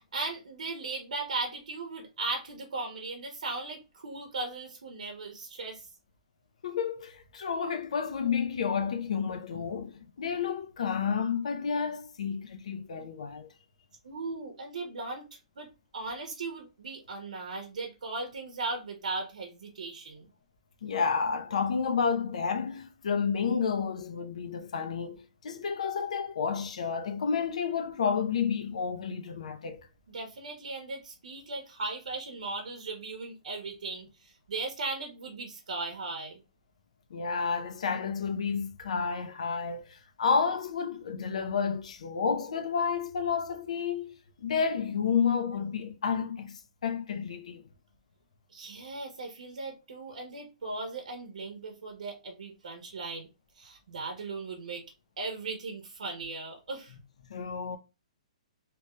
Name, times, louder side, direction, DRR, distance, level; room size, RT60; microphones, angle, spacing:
voice 1, 0.1-5.9 14.0-15.2 15.6-20.2 30.1-36.4 48.5-53.3 53.6-54.8 55.2-57.0, right 3 dB, 80° right, 0.8 m, -37 dB
voice 2, 6.6-13.5 20.8-29.9 37.1-44.1 44.4-47.6 57.3-57.8, left 6 dB, 60° left, 0.6 m, -30 dB
2.9 x 2.3 x 2.9 m
hypercardioid pair, 170°, 4 cm